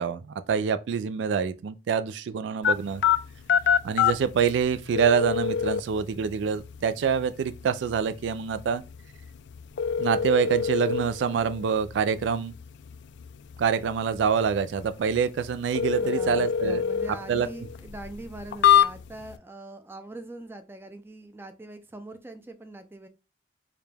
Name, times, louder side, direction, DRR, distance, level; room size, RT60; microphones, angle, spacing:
voice 1, 0.0-3.0 3.8-8.8 10.0-12.5 13.6-16.8 17.3-17.5, right 7 dB, 80° right, 0.3 m, -26 dB
sound 1, 2.6-19.4, left 8 dB, 75° left, 0.3 m, -28 dB
voice 2, 15.9-23.1, right 1 dB, 15° right, 0.4 m, -42 dB
4.8 x 2.2 x 3.3 m
head